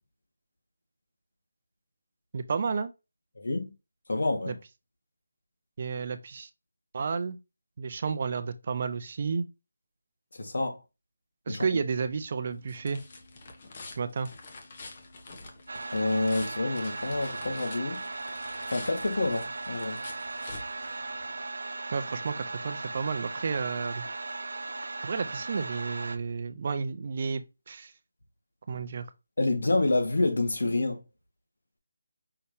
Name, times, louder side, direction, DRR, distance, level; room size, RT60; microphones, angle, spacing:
voice 1, 2.3-2.9 4.5-4.6 5.8-6.5 6.9-7.4 7.8-9.5 11.5-13.0 14.0-14.3 21.9-24.0 25.0-27.9 28.7-29.1, right 5 dB, 35° right, 0.5 m, -31 dB
voice 2, 3.4-3.7 4.1-4.6 10.3-10.8 11.5-11.7 15.9-18.0 18.7-20.0 29.4-31.0, left 2 dB, 75° left, 1.6 m, -28 dB
sound 1, 12.0-21.5, left 3 dB, 35° left, 1.0 m, -47 dB
sound 2, 15.7-26.2, right 3 dB, 80° right, 0.6 m, -37 dB
5.7 x 3.3 x 2.7 m
figure-of-eight pair, 170°, 0 cm